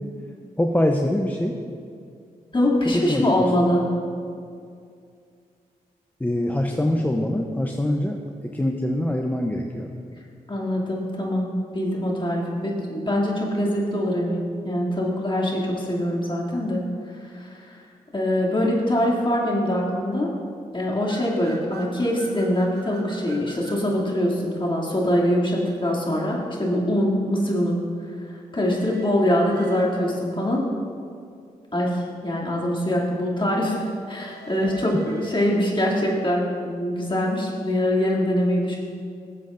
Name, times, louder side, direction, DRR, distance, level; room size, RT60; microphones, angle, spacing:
voice 1, 0.6-1.6 2.8-3.5 6.2-9.9, left 1 dB, 10° left, 2 dB, 0.7 m, -24 dB
voice 2, 2.5-3.8 10.5-11.5 11.7-16.8 17.3-17.6 18.1-20.3 20.7-27.8 28.5-30.6 31.7-38.8, left 1 dB, 30° left, -5 dB, 2.6 m, -23 dB
sound 1, 21.1-23.9 28.7-30.2 34.1-36.0, right 4 dB, 85° right, 1.0 m, -45 dB
16.5 x 7.4 x 2.6 m, 2.3 s
supercardioid pair, 50°, 16 cm